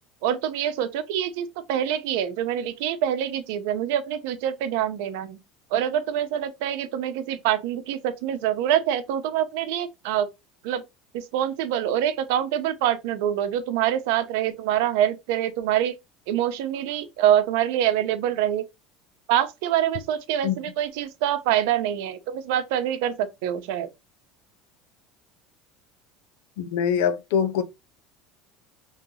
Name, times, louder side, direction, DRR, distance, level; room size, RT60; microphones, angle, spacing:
voice 1, 0.2-5.4 5.7-10.3 10.6-10.8 11.1-15.9 16.3-18.6 19.3-23.9, right 10 dB, 75° right, 0.7 m, -25 dB
voice 2, 26.6-27.6, left 8 dB, 85° left, 0.7 m, -23 dB
5.3 x 3.2 x 2.8 m
cardioid pair, 155°, 0 cm